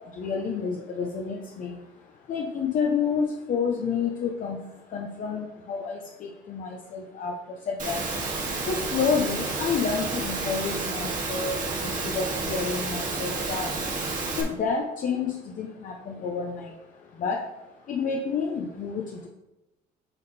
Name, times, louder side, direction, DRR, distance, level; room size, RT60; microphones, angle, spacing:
voice 1, 0.2-1.8 2.3-4.6 4.9-6.0 6.5-7.3 7.7-8.0 8.7-13.7 14.4-16.7 17.2-17.4 17.9-19.3, left 5 dB, 50° left, 1 dB, 0.7 m, -29 dB
Engine / Mechanisms, 7.8-14.4, right 3 dB, 50° right, 2.0 m, -30 dB
8.1 x 3.6 x 4.2 m, 0.99 s
cardioid pair, 110°, 17 cm